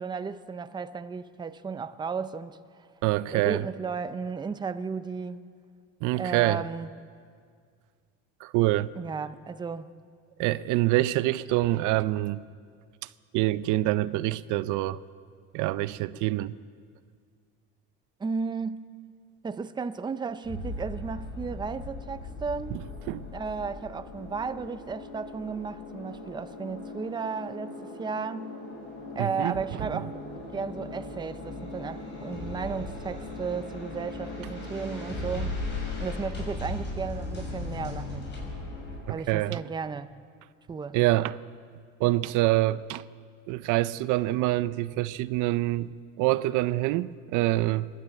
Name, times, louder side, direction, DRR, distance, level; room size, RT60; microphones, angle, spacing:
voice 1, 0.0-2.9 3.3-5.5 6.1-6.9 9.0-9.9 18.2-18.8 19.4-22.8 23.3-28.5 29.1-30.1 30.5-35.6 36.0-38.3 39.1-40.1 40.7-41.0, right 5 dB, 15° right, 0.6 m, -34 dB
voice 2, 3.0-3.6 6.0-6.6 8.4-8.9 10.4-12.4 13.3-15.0 15.5-16.6 22.7-22.8 23.1-23.3 29.2-29.5 39.1-39.6 40.9-41.4 42.0-43.0 43.5-45.9 46.2-47.9, right 17 dB, 75° right, 0.6 m, -26 dB
sound 1, 20.4-39.0, left 2 dB, 35° left, 6.7 m, -38 dB
27.5 x 12.0 x 8.3 m
cardioid pair, 135°, 31 cm